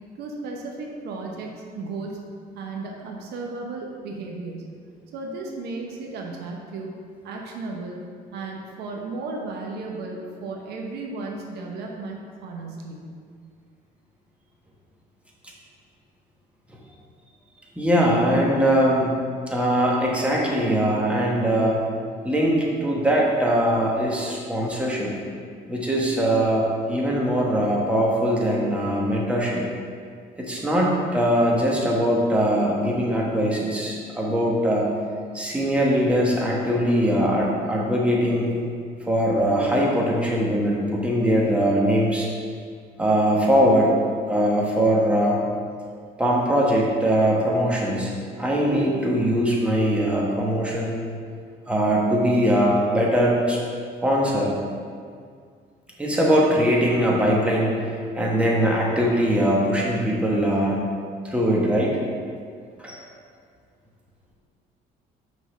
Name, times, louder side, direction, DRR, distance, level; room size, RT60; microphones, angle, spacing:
voice 1, 0.2-2.2 2.5-4.7 5.1-6.9 7.2-8.0 8.3-13.0, right 3 dB, 75° right, 0 dB, 1.0 m, -34 dB
voice 2, 17.8-19.2 19.5-21.8 22.2-25.1 25.7-29.6 30.4-34.9 35.3-38.5 39.1-42.3 43.0-43.9 44.3-45.4 46.2-48.1 48.4-51.0 51.7-53.6 54.0-54.5 56.0-57.7 58.1-60.8 61.2-62.0 62.8-63.0, equal, 5° right, -3 dB, 1.3 m, -21 dB
6.0 x 3.9 x 6.1 m, 2.1 s
cardioid pair, 110°, 17 cm